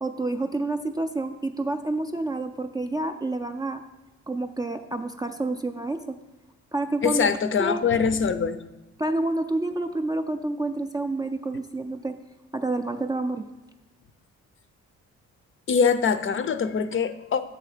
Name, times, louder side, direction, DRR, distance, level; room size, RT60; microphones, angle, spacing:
voice 1, 0.0-3.8 4.3-6.2 6.7-7.3 7.6-7.8 9.0-12.2 12.5-13.5, right 2 dB, 15° right, 6 dB, 0.4 m, -28 dB
voice 2, 7.0-8.6 15.7-17.4, left 6 dB, 40° left, 11 dB, 0.5 m, -23 dB
7.7 x 3.8 x 6.5 m, 1.0 s
cardioid pair, 90°, 30 cm